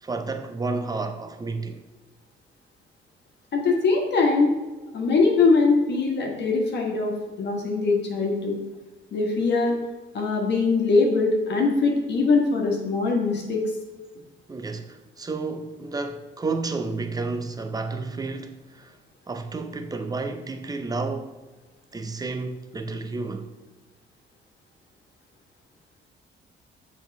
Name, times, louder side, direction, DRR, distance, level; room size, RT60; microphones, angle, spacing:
voice 1, 0.0-1.8 14.5-19.0 19.3-21.4 21.9-23.5, right 3 dB, 20° right, 0.6 m, -31 dB
voice 2, 3.5-4.5 4.9-8.5 9.1-9.7 10.1-13.6, left 4 dB, 60° left, 1.4 m, -22 dB
6.6 x 4.1 x 4.6 m
cardioid pair, 90°, 20 cm